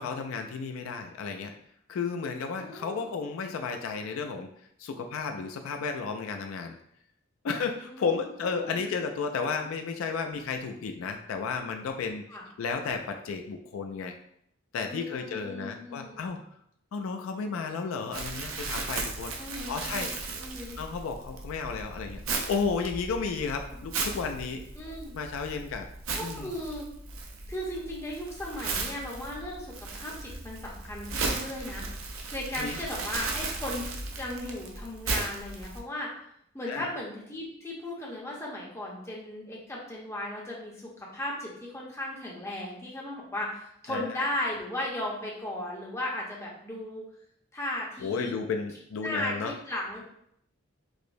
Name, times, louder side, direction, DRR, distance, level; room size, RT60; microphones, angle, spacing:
voice 1, 0.0-1.5 1.9-4.5 4.8-6.8 7.4-12.3 12.6-14.1 14.7-16.4 16.9-19.3 19.7-20.1 20.8-22.2 22.5-24.6 25.1-25.9 26.2-26.5 32.5-32.8 36.7-36.9 43.9-44.2 48.0-49.5, left 5 dB, 75° left, 5 dB, 0.3 m, -33 dB
voice 2, 2.5-3.1 7.5-8.1 8.4-9.0 12.3-12.4 14.9-16.3 19.4-20.8 23.5-23.6 24.8-25.1 26.2-26.9 27.5-33.9 34.1-36.1 36.5-47.0 47.5-48.3 49.0-50.1, left 1 dB, 15° left, -4 dB, 0.8 m, -36 dB
Crumpling crinkling, 18.1-35.8, right 3 dB, 80° right, 0.5 m, -36 dB
4.7 x 2.0 x 2.6 m, 0.72 s
head